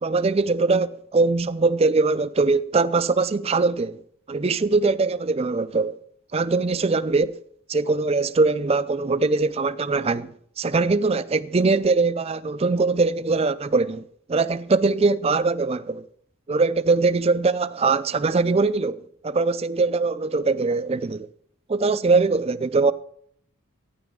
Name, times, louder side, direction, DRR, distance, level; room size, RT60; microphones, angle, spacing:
voice 1, 0.0-4.0 4.3-6.0 6.3-7.4 7.7-16.1 16.5-21.3 21.7-22.9, right 3 dB, 25° right, 0.4 m, -22 dB
14.0 x 9.6 x 3.7 m
head